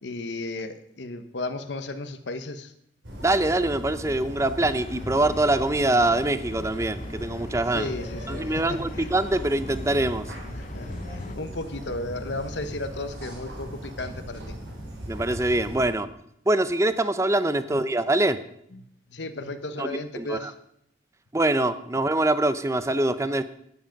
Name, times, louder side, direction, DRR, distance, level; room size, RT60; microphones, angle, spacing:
voice 1, 0.0-2.7 7.7-9.1 10.6-14.6 17.7-17.8 19.1-20.5, left 2 dB, 70° left, 9 dB, 1.0 m, -34 dB
sound 1, 3.0-15.8, equal, 75° right, 4.0 m, -38 dB
voice 2, 3.2-7.9 8.3-10.3 15.1-16.1 16.5-18.4 19.8-20.5 21.3-23.4, right 2 dB, 15° right, 12 dB, 0.6 m, -24 dB
sound 2, 4.7-11.4, left 3 dB, 40° left, 0.6 m, -43 dB
12.5 x 9.9 x 5.2 m, 0.74 s
head